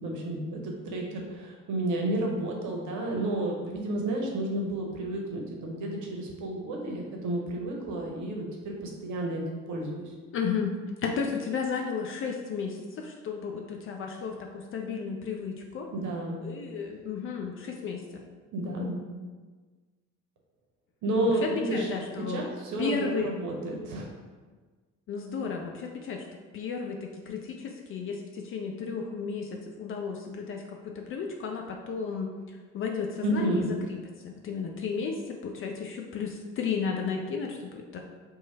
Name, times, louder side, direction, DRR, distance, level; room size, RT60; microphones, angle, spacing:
voice 1, 0.0-9.4 9.7-10.1 15.9-16.4 18.5-19.0 21.0-21.9 22.3-24.1 33.2-33.7, right 1 dB, 50° right, 0 dB, 0.8 m, -31 dB
voice 2, 10.3-10.7 11.0-15.9 16.4-18.2 18.6-18.9 21.4-22.4 22.8-23.3 25.1-26.3 26.5-33.7 34.2-38.0, left 5 dB, 35° left, 2 dB, 0.4 m, -33 dB
3.0 x 2.3 x 4.1 m, 1.4 s
figure-of-eight pair, 45°, 39 cm